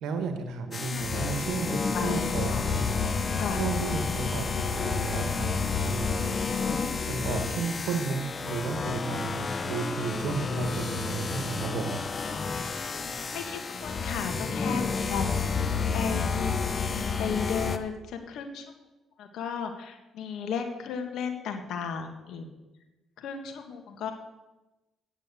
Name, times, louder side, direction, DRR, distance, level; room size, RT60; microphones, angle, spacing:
voice 1, 0.0-2.8 3.5-5.5 5.8-6.4 7.1-12.0, right 5 dB, 85° right, 7 dB, 1.2 m, -33 dB
sound 1, 0.7-17.8, left 5 dB, 35° left, 0.8 m, -30 dB
voice 2, 1.9-2.6 3.4-3.6 13.1-15.7 15.9-16.6 16.9-18.7 19.2-22.5 23.2-24.1, left 6 dB, 80° left, 5 dB, 1.7 m, -35 dB
9.5 x 7.3 x 8.2 m, 1.0 s
cardioid pair, 90°, 0 cm